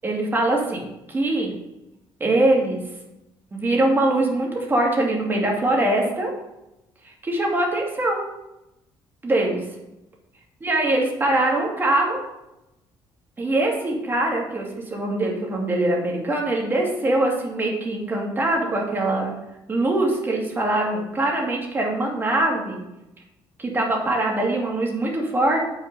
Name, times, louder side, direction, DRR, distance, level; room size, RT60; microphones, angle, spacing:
voice 1, 0.0-0.8 1.1-1.5 2.2-2.8 3.5-6.3 7.0-8.2 9.2-9.6 10.6-12.2 13.4-19.3 19.7-22.8 23.6-25.6, right 2 dB, 25° right, 0 dB, 2.1 m, -22 dB
7.7 x 5.7 x 5.2 m, 0.91 s
cardioid pair, 120°, 9 cm